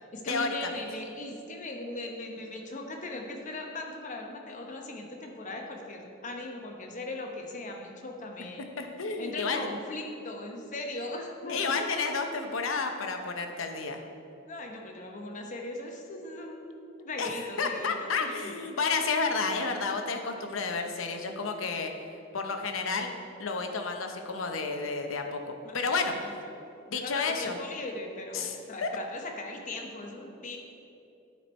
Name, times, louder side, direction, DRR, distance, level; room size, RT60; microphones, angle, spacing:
voice 1, 0.1-8.7 9.2-11.7 14.4-16.7 17.0-18.5 25.6-25.8 26.1-26.3 26.9-30.6, left 2 dB, 40° left, 2 dB, 0.8 m, -39 dB
voice 2, 8.6-9.7 11.5-14.0 17.2-17.3 17.6-21.9 22.3-23.1 23.4-26.1 26.9-27.6 28.3-28.9, left 4 dB, 75° left, 5 dB, 0.7 m, -31 dB
10.0 x 4.5 x 4.3 m, 2.7 s
head